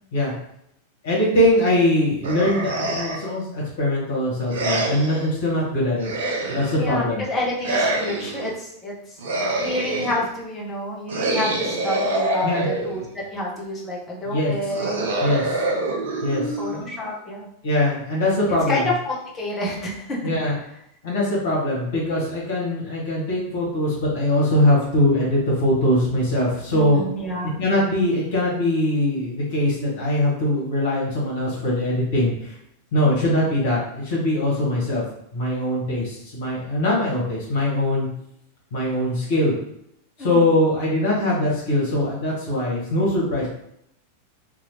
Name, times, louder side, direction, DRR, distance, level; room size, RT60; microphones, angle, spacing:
voice 1, 1.0-6.1 6.5-7.2 12.4-12.7 14.2-14.5 15.2-15.6 16.2-16.6 17.6-18.9 20.2-20.5 21.0-27.0 27.6-32.6 32.9-35.0 35.3-38.1 38.7-39.6 40.2-43.5, left 1 dB, 55° left, -5 dB, 1.4 m, -22 dB
sound 1, 2.2-3.4 4.5-5.3 6.0-6.9 7.6-8.5 9.2-10.3 11.1-13.1 14.7-17.1, right 2 dB, 60° right, 0.5 m, -26 dB
voice 2, 6.8-9.2 9.6-15.0 16.6-17.5 18.7-20.2 26.7-27.6 33.0-33.3 40.2-40.5, left 1 dB, 20° left, -3 dB, 0.9 m, -29 dB
3.0 x 2.6 x 2.8 m, 0.75 s
figure-of-eight pair, 90°, 0 cm